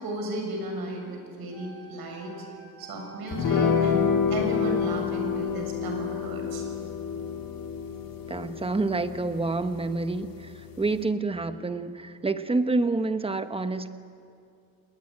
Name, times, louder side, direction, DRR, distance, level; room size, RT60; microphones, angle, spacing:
voice 1, 0.0-2.5 2.8-4.0 4.3-6.6, right 1 dB, 80° right, 3 dB, 6.8 m, -35 dB
Wind instrument woodwind instrument, 1.5-5.3, right 5 dB, 5° left, 7.3 m, -49 dB
sound 1, 3.3-11.1, left 6 dB, 70° left, 2.9 m, -29 dB
voice 2, 8.3-13.9, right 3 dB, 15° right, 10 dB, 1.0 m, -28 dB
29.0 x 19.5 x 9.9 m, 2.4 s
wide cardioid pair, 165°, 36 cm